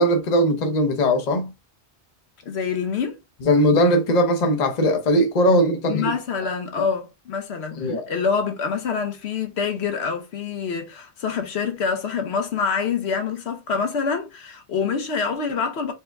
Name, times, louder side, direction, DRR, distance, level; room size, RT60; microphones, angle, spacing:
voice 1, 0.0-1.5 3.4-6.2 6.8-6.9 7.8-8.1, equal, 45° left, 0.8 m, -19 dB
voice 2, 2.4-3.2 5.9-15.9, left 5 dB, 75° left, 1.1 m, -26 dB
4.5 x 2.1 x 3.4 m
omnidirectional pair, 1.1 m